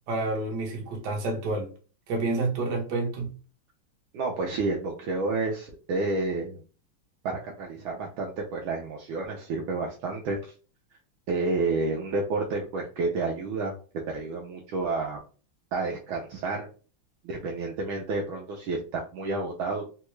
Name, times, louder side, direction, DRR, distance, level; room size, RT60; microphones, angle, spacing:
voice 1, 0.1-1.7 2.1-3.3, right 2 dB, 60° right, 1.4 m, -29 dB
voice 2, 4.1-6.6 7.2-10.4 11.3-13.7 14.1-15.2 15.7-16.7 17.2-19.8, right 3 dB, 75° right, 1.4 m, -30 dB
3.7 x 2.2 x 3.0 m
omnidirectional pair, 2.4 m